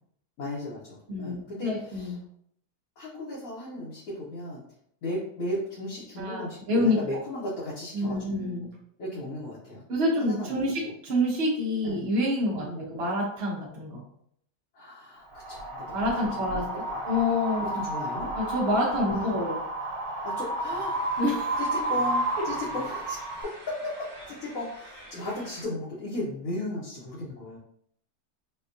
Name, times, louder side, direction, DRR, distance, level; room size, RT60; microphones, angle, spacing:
voice 1, 0.4-2.1 3.0-4.6 5.0-8.7 9.0-9.8 10.2-10.7 11.8-12.0 12.5-12.9 14.7-16.7 16.9-17.0 17.6-18.3 19.1-19.4 20.2-21.0 21.6-27.6, left 1 dB, 65° left, -7 dB, 1.2 m, -36 dB
voice 2, 1.1-2.2 6.2-7.0 7.9-8.7 9.9-14.0 15.9-17.8 18.4-19.6 21.2-21.6, left 1 dB, 50° right, -4 dB, 0.8 m, -27 dB
Wind, 15.3-23.4, right 1 dB, 85° right, 1.3 m, -31 dB
sound 1, 20.6-25.6, right 1 dB, 35° right, 0.4 m, -47 dB
4.3 x 2.2 x 2.5 m, 0.68 s
omnidirectional pair, 1.7 m